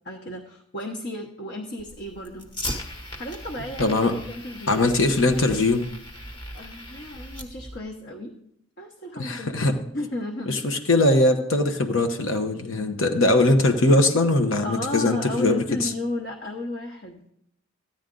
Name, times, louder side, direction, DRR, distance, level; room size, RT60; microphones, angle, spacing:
voice 1, 0.0-2.5 3.2-3.9 4.3-4.9 6.5-8.4 8.8-9.6 9.9-10.7 14.6-17.2, left 1 dB, 55° left, 0 dB, 1.2 m, -34 dB
Fire, 1.8-7.8, left 1 dB, 25° left, 1.2 m, -38 dB
voice 2, 3.8-4.2 4.7-5.8 9.2-9.8 10.5-15.9, left 2 dB, 90° left, 5 dB, 1.1 m, -21 dB
14.0 x 10.0 x 3.9 m, 0.74 s
head